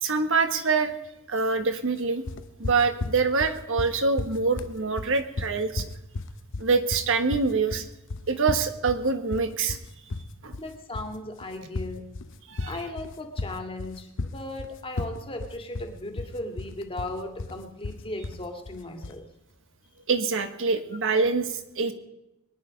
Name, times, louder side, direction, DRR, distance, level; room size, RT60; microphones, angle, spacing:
voice 1, 0.0-1.0 1.3-2.2 2.6-5.8 6.6-7.9 8.3-9.8 10.4-10.6 12.5-12.8 20.1-21.9, right 4 dB, 60° right, 8 dB, 1.4 m, -25 dB
sound 1, 2.3-19.2, left 2 dB, 60° left, 0.7 m, -35 dB
voice 2, 10.6-12.0 12.7-19.2, left 1 dB, 25° left, 4 dB, 2.0 m, -37 dB
23.0 x 10.5 x 5.2 m, 0.90 s
head